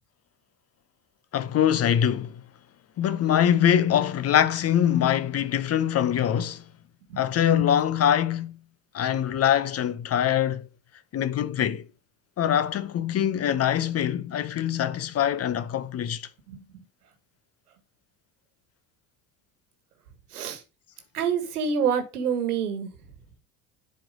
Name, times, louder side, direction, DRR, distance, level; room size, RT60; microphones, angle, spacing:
voice 1, 1.3-2.4 3.0-6.6 7.2-8.6 8.9-10.7 11.1-11.9 12.4-16.3, left 10 dB, 35° left, 0.7 m, -23 dB
voice 2, 21.1-22.9, right 7 dB, 85° right, 1.5 m, -26 dB
7.6 x 4.5 x 4.9 m
hypercardioid pair, 70°, 44 cm